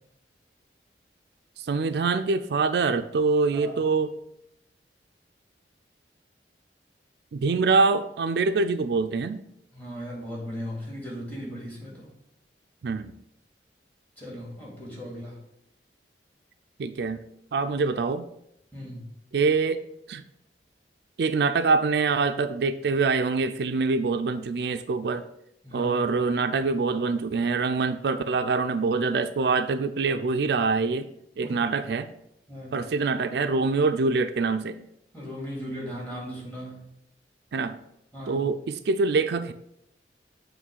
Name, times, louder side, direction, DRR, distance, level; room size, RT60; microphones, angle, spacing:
voice 1, 1.6-4.1 7.3-9.4 12.8-13.1 16.8-17.2 17.5-18.3 19.3-20.2 21.2-25.2 25.7-31.1 31.4-32.1 32.7-34.8 37.5-37.8 38.3-39.5, right 4 dB, 65° right, 9 dB, 0.4 m, -25 dB
voice 2, 9.7-12.1 14.2-15.4 18.7-19.0 25.6-25.9 31.4-31.6 32.5-32.8 35.1-36.8 38.1-38.4, equal, 10° left, -4 dB, 2.3 m, -37 dB
7.3 x 3.1 x 6.2 m, 0.79 s
head